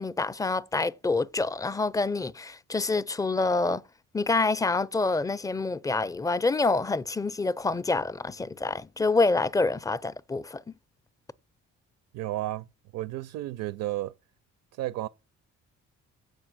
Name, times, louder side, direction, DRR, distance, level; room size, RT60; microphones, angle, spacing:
voice 1, 0.0-3.8 4.1-10.6, left 3 dB, 10° left, 0.4 m, -27 dB
voice 2, 12.1-12.7 12.9-14.1 14.7-15.1, right 15 dB, 80° right, 0.5 m, -32 dB
7.6 x 5.1 x 7.4 m
cardioid pair, 90°, 30 cm